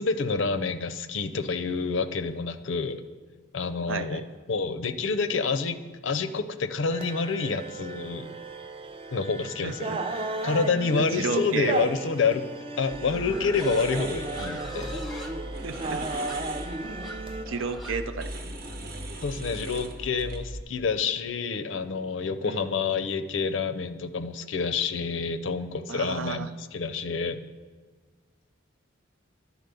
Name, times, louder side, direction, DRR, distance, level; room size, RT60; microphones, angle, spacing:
voice 1, 0.0-3.0 3.5-8.3 9.1-9.9 10.4-12.5 12.8-15.0 19.2-27.4, left 4 dB, 75° left, 10 dB, 0.5 m, -28 dB
voice 2, 3.9-4.2 9.6-10.0 11.0-11.8 15.6-16.0 17.5-18.3 22.4-22.7 25.9-26.5, right 4 dB, 85° right, 10 dB, 0.5 m, -32 dB
sound 1, 6.9-17.5, right 2 dB, 30° right, 0.4 m, -35 dB
sound 2, 12.9-20.6, right 1 dB, 50° right, 0.9 m, -39 dB
Livestock farm animals working animals, 13.1-19.1, equal, ahead, 0.8 m, -43 dB
11.0 x 4.1 x 6.8 m, 1.4 s
head